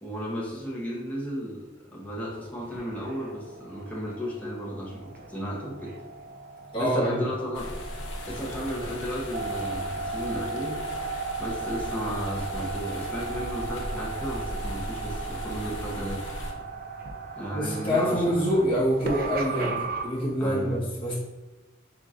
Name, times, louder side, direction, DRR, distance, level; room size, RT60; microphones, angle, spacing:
voice 1, 0.0-1.6 1.9-5.0 5.3-5.9 6.8-7.7 8.3-10.8 11.4-16.2 17.4-18.4 20.4-20.8, equal, 10° left, -6 dB, 0.8 m, -34 dB
sound 1, 2.1-20.1, right 4 dB, 50° right, 0.4 m, -36 dB
voice 2, 6.7-7.2 17.5-21.1, equal, 30° left, -7 dB, 1.2 m, -26 dB
sound 2, 7.5-16.5, left 1 dB, 75° left, 0.7 m, -38 dB
4.1 x 3.6 x 2.5 m, 1.2 s
head